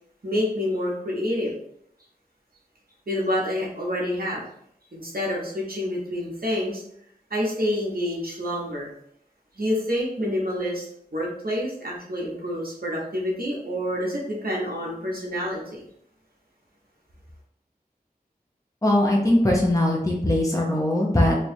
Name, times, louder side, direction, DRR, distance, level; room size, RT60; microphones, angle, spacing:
voice 1, 0.2-1.5 3.1-4.4 4.9-6.8 7.3-8.9 9.5-10.8 11.1-15.8, left 1 dB, 70° right, -3 dB, 1.2 m, -27 dB
voice 2, 18.8-21.4, left 1 dB, 20° left, -2 dB, 0.9 m, -20 dB
3.2 x 2.5 x 4.3 m, 0.70 s
wide cardioid pair, 45°, 16 cm